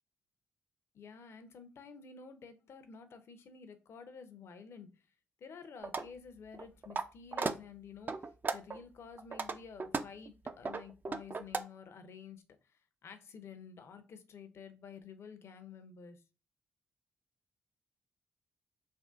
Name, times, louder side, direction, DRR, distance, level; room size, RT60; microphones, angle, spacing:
voice 1, 0.9-4.9 5.4-16.2, left 6 dB, 60° left, 8 dB, 0.5 m, -51 dB
sound 1, 5.8-6.1 6.5-7.0 7.3-7.5 8.1-8.8 9.2-11.6, right 4 dB, 40° right, 0.4 m, -35 dB
3.5 x 2.4 x 2.4 m, 0.31 s
hypercardioid pair, 40°, 5 cm